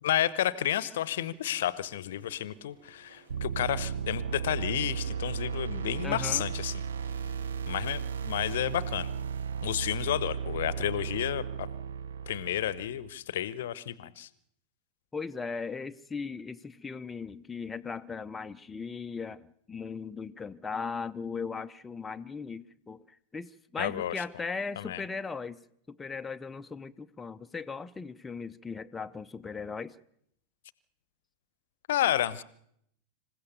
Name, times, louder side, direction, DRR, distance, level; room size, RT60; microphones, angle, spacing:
voice 1, 0.0-6.8 7.7-9.1 9.6-11.7 12.3-14.3 23.8-24.2 24.8-25.0 31.9-32.4, left 12 dB, 60° left, 0.9 m, -31 dB
sound 1, 1.3-7.4, right 2 dB, 80° right, 5.8 m, -60 dB
sound 2, 3.3-13.1, right 7 dB, 65° right, 0.9 m, -35 dB
voice 2, 6.0-6.4 15.1-25.6 25.9-30.0, left 5 dB, 15° left, 0.7 m, -38 dB
27.0 x 16.0 x 7.0 m
figure-of-eight pair, 90°, 0 cm